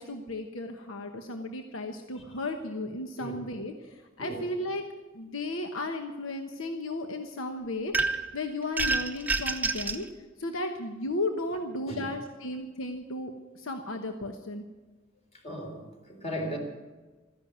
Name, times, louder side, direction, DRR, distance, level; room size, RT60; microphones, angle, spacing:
voice 1, 0.0-4.8 5.1-7.9 8.3-10.1 10.4-14.6, left 2 dB, 85° left, 5 dB, 1.1 m, -34 dB
sound 1, 7.9-8.3 8.8-10.0, right 3 dB, 10° right, 0.8 m, -28 dB
voice 2, 15.4-16.6, equal, 35° left, 2 dB, 3.7 m, -36 dB
14.0 x 10.5 x 9.3 m, 1.3 s
head